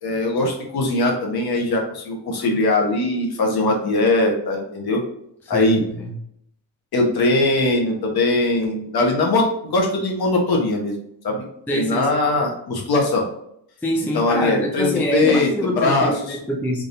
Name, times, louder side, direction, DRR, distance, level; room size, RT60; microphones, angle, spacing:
voice 1, 0.0-5.0 5.5-5.8 6.9-11.0 11.2-11.4 11.7-13.3 14.1-16.4, left 2 dB, 50° left, 1 dB, 1.2 m, -21 dB
voice 2, 5.5-6.2 11.7-12.1 13.8-16.8, equal, 5° left, 1 dB, 0.4 m, -25 dB
3.8 x 3.6 x 2.6 m, 0.75 s
cardioid pair, 140°, 47 cm